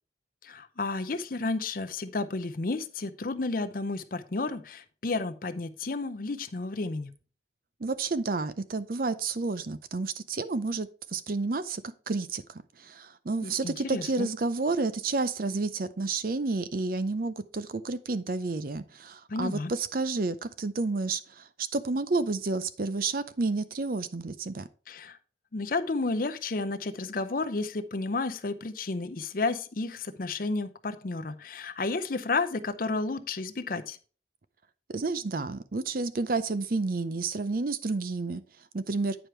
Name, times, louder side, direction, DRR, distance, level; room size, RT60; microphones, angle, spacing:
voice 1, 0.4-7.1 13.4-14.3 19.3-19.7 24.9-25.2 25.5-34.0, left 3 dB, 50° left, 10 dB, 0.6 m, -32 dB
voice 2, 7.8-12.4 12.8-24.7 34.9-38.4 38.7-39.2, right 3 dB, 50° right, 13 dB, 0.6 m, -30 dB
9.1 x 5.0 x 4.5 m, 0.38 s
head